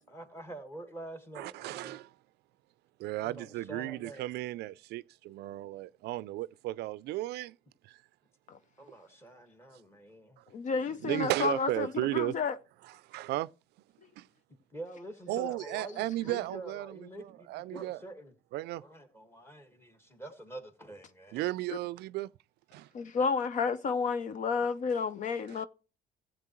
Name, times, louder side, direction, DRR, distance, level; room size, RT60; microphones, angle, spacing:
voice 1, 0.0-2.0 3.2-4.3 8.8-10.4 10.8-11.1 14.7-18.3 18.8-21.5, right 1 dB, 15° left, 1.7 m, -46 dB
voice 2, 1.4-2.1 3.0-7.5 7.9-8.0 11.0-12.3 13.1-13.5 14.2-14.3 15.3-18.0 18.5-18.8 21.3-22.3 22.7-22.9, right 17 dB, 75° right, 0.4 m, -34 dB
voice 3, 10.5-12.6 22.9-25.7, left 5 dB, 50° left, 0.6 m, -31 dB
15.0 x 7.9 x 3.0 m
cardioid pair, 110°, 17 cm